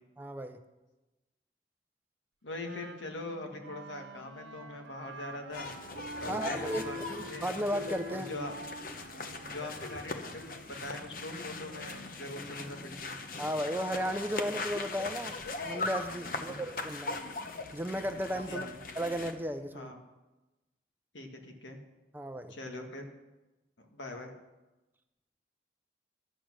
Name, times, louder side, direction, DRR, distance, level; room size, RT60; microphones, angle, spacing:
voice 1, 0.2-0.6 6.3-8.3 13.4-15.4 15.7-17.2 17.7-18.7 18.9-19.9 22.1-22.5, equal, 10° right, 8 dB, 0.5 m, -35 dB
voice 2, 2.4-5.7 6.2-7.5 8.1-8.6 9.2-10.4 10.8-13.1 16.3-16.6 18.5-18.8 19.7-20.0 21.1-21.8 22.5-23.1 23.8-24.3, left 2 dB, 90° left, 3 dB, 1.6 m, -42 dB
Wind instrument woodwind instrument, 2.6-12.1, equal, 80° right, 1.0 m, -46 dB
sound 1, 5.5-19.3, left 3 dB, 50° left, 0.9 m, -40 dB
11.5 x 8.4 x 6.1 m, 1.1 s
head